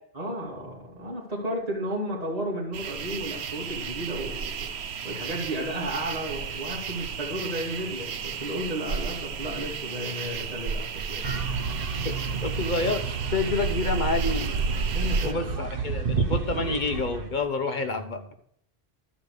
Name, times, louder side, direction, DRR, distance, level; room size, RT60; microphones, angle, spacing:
voice 1, 0.1-4.7 5.0-11.4 14.9-15.5 16.5-16.6, right 1 dB, 35° right, -6 dB, 2.9 m, -33 dB
sound 1, 2.7-15.3, right 5 dB, 85° right, 1.0 m, -33 dB
sound 2, 11.2-17.5, right 5 dB, 60° right, 1.2 m, -31 dB
voice 2, 12.4-14.6 15.2-18.2, left 3 dB, 50° left, 7 dB, 1.0 m, -28 dB
12.5 x 5.0 x 6.6 m, 0.70 s
omnidirectional pair, 1.1 m